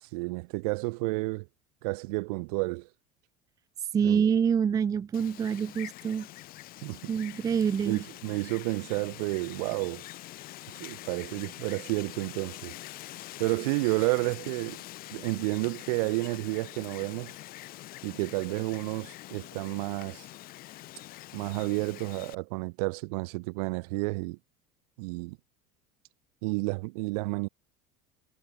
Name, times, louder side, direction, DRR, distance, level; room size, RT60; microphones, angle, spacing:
voice 1, 0.0-1.5 1.8-2.9 4.0-4.2 6.8-7.1 7.8-10.0 10.8-12.8 13.4-14.8 15.1-17.4 18.0-20.3 21.3-24.4 25.0-25.4 26.4-27.5, right 27 dB, 80° right, 3.8 m, -31 dB
voice 2, 3.9-6.3 7.1-8.0, right 7 dB, 20° right, 0.5 m, -26 dB
Wind, 5.1-22.3, left 16 dB, 50° left, 6.7 m, -45 dB
cardioid pair, 150°, 19 cm